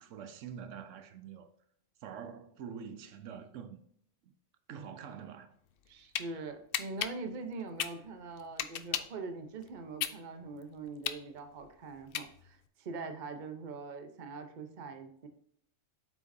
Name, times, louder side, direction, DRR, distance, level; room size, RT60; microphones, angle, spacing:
voice 1, 0.0-1.5 2.0-3.8 4.2-4.3 4.7-5.6, right 7 dB, 80° right, 1.0 m, -45 dB
sound 1, 5.7-6.3 6.7-9.2 9.6-12.7, left 9 dB, 60° left, 0.6 m, -36 dB
voice 2, 5.9-15.3, right 3 dB, 45° right, 0.8 m, -43 dB
8.0 x 5.9 x 2.6 m
omnidirectional pair, 1.3 m